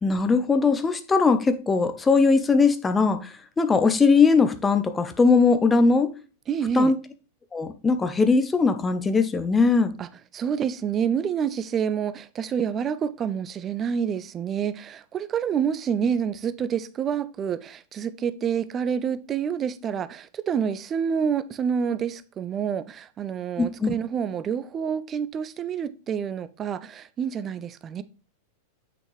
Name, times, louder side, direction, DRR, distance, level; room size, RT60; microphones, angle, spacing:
voice 1, 0.0-6.1 6.7-7.0 7.5-9.9 23.6-23.9, left 4 dB, 15° left, 0.8 m, -20 dB
voice 2, 6.5-6.9 10.0-10.1 10.3-28.0, right 7 dB, 25° right, 0.5 m, -28 dB
7.9 x 6.1 x 3.2 m
figure-of-eight pair, 90°, 0 cm